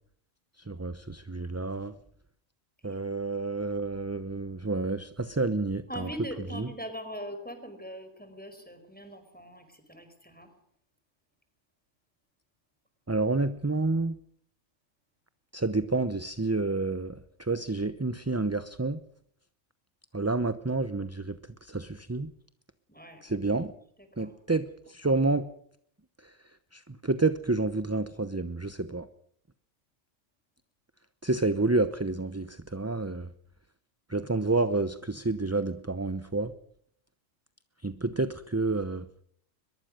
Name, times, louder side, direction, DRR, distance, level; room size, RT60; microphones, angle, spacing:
voice 1, 0.7-1.9 2.8-6.1 6.5-6.7 13.1-14.2 15.5-19.0 20.1-22.3 23.2-23.7 24.2-25.5 26.2-26.3 26.7-29.1 31.2-33.3 34.1-36.5 37.8-39.1, right 3 dB, 15° right, 12 dB, 0.7 m, -29 dB
voice 2, 5.9-10.5 22.9-23.2 24.2-24.3, equal, 5° left, 8 dB, 4.8 m, -41 dB
23.0 x 22.0 x 6.5 m, 0.65 s
omnidirectional pair, 1.3 m